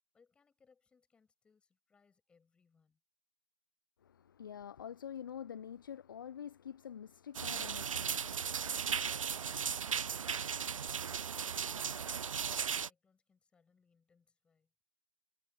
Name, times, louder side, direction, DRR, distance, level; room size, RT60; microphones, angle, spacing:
voice 1, 0.1-3.0 9.5-14.7, left 5 dB, 5° left, 6.5 m, -72 dB
voice 2, 4.0-8.6, left 8 dB, 35° left, 0.6 m, -47 dB
sound 1, 7.3-12.9, right 7 dB, 65° right, 0.4 m, -36 dB
figure-of-eight pair, 155°, 18 cm